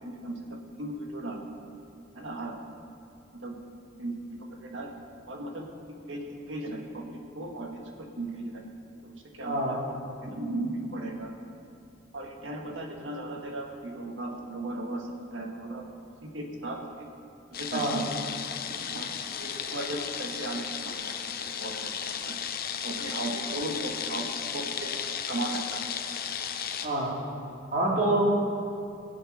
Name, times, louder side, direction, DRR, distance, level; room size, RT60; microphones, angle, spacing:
voice 1, 0.0-1.4 2.1-2.5 3.4-3.6 4.0-4.9 5.3-8.6 9.0-9.8 10.2-11.3 12.1-15.8 16.3-17.1 17.5-18.1 18.7-22.4 22.8-24.9 25.3-25.8, right 2 dB, 70° right, 1 dB, 1.8 m, -37 dB
voice 2, 9.4-9.8 17.7-18.0 26.8-27.1 27.7-28.2, right 2 dB, 45° right, -3 dB, 2.4 m, -26 dB
sound 1, 17.5-26.9, left 8 dB, 50° left, 0.8 m, -34 dB
18.0 x 8.0 x 5.5 m, 2.5 s
head